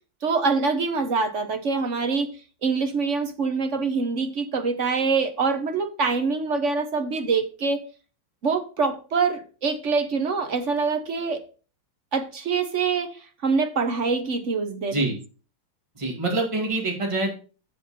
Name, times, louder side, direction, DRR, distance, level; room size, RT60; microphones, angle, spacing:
voice 1, 0.2-2.3 2.6-7.8 8.4-11.4 12.1-15.0, right 4 dB, 50° right, 7 dB, 0.9 m, -25 dB
voice 2, 16.0-17.3, right 2 dB, 15° right, 0 dB, 2.1 m, -25 dB
8.3 x 7.8 x 4.2 m, 0.37 s
omnidirectional pair, 2.3 m